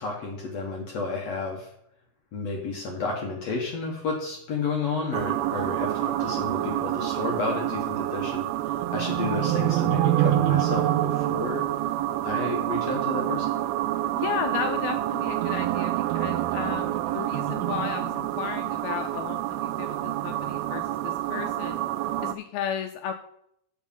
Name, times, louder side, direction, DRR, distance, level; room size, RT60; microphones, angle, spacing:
voice 1, 0.0-1.7 2.3-11.6 12.2-13.5, left 3 dB, 70° left, -1 dB, 1.6 m, -31 dB
sound 1, 5.1-22.4, right 14 dB, 85° right, 2.1 m, -27 dB
voice 2, 14.1-21.8 22.2-23.1, left 8 dB, 85° left, 6 dB, 2.2 m, -34 dB
7.4 x 5.9 x 5.4 m, 0.73 s
omnidirectional pair, 4.8 m